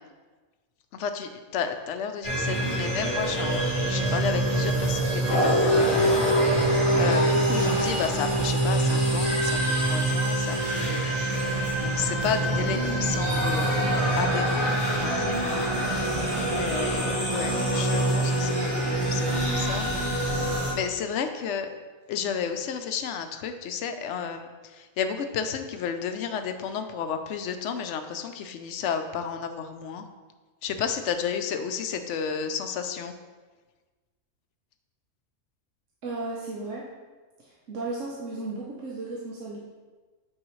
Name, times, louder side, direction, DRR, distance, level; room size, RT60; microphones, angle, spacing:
voice 1, 0.9-11.3 11.8-13.7 14.2-15.6 16.5-19.9 20.1-20.4 20.7-21.7 22.1-30.1 30.6-33.1, left 7 dB, 65° left, 7 dB, 0.9 m, -32 dB
sound 1, 2.2-20.7, right 1 dB, 25° right, 1.6 m, -25 dB
voice 2, 36.0-36.8 37.4-39.6, right 3 dB, 65° right, -3 dB, 1.2 m, -35 dB
8.6 x 4.8 x 3.1 m, 1.3 s
omnidirectional pair, 1.4 m